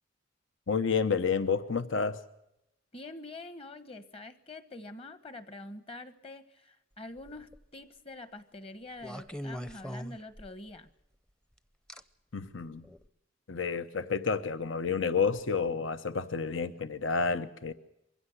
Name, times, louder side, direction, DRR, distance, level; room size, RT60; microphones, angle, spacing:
voice 1, 0.7-2.2 12.3-12.8 13.5-17.7, left 5 dB, 75° left, 0.9 m, -30 dB
voice 2, 2.9-10.9, left 2 dB, 30° left, 1.3 m, -45 dB
sound 1, 7.2-7.6 9.0-10.8 11.9-12.0 12.8-13.0, equal, 5° left, 0.7 m, -41 dB
23.0 x 16.0 x 8.0 m
head